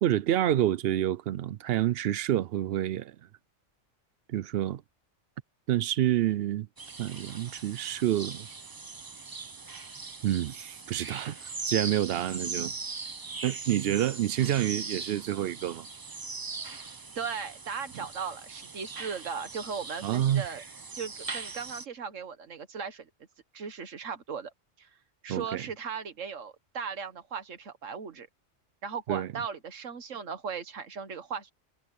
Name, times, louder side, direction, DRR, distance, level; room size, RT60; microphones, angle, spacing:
voice 1, 0.0-3.2 4.3-4.8 5.7-6.7 7.0-8.5 10.2-12.7 13.4-15.9 20.0-20.5 25.3-25.6 29.1-29.3, right 12 dB, 65° right, 0.7 m, -28 dB
sound 1, 6.8-21.8, right 4 dB, 25° right, 0.4 m, -40 dB
voice 2, 17.2-20.6 20.9-23.1 23.5-24.5 24.8-24.9 25.2-28.3 28.8-31.5, right 6 dB, 90° right, 1.7 m, -37 dB
omnidirectional pair, 1.3 m